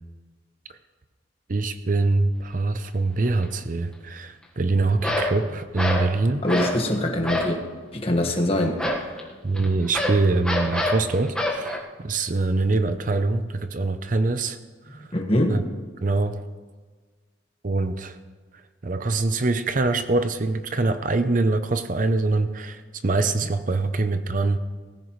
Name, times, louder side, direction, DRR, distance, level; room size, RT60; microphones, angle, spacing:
voice 1, 1.5-6.4 9.4-14.6 14.9-15.1 15.5-15.6 16.0-16.4 17.6-18.2 18.8-24.6, right 3 dB, 40° right, 10 dB, 0.6 m, -24 dB
sound 1, 3.3-3.4 5.0-5.4 5.8-6.1 6.5-6.8 7.2-7.6 8.8-11.8, left 1 dB, 5° left, 1.4 m, -26 dB
voice 2, 6.4-7.6 7.9-9.3 14.9-15.6, left 1 dB, 30° left, 2 dB, 1.5 m, -24 dB
18.5 x 15.0 x 3.2 m, 1.4 s
head